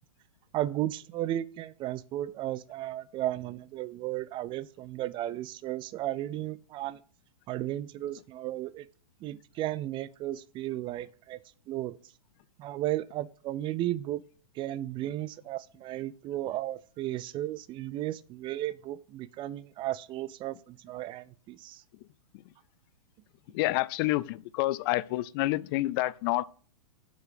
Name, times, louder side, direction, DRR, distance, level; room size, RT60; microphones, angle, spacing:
voice 1, 0.5-7.0 7.5-8.9 9.2-11.4 11.7-12.0 12.6-14.2 14.6-21.8, right 14 dB, 25° right, 0.4 m, -34 dB
voice 2, 23.5-26.4, left 18 dB, 40° left, 0.4 m, -28 dB
7.3 x 5.9 x 6.6 m
hypercardioid pair, 120°, 19 cm